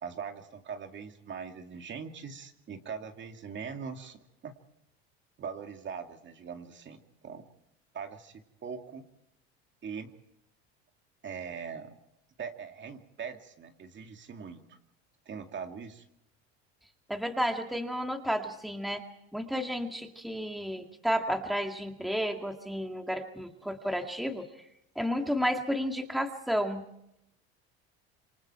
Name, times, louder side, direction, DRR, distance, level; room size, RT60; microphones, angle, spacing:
voice 1, 0.0-4.5 5.4-7.5 7.9-9.0 9.8-10.1 11.2-12.0 12.4-14.6 15.3-16.0, right 6 dB, 40° right, 5 dB, 2.4 m, -41 dB
voice 2, 17.1-19.0 19.3-24.5 25.0-26.9, equal, ahead, 4 dB, 2.1 m, -32 dB
27.5 x 24.0 x 4.5 m, 0.80 s
supercardioid pair, 100°, 31 cm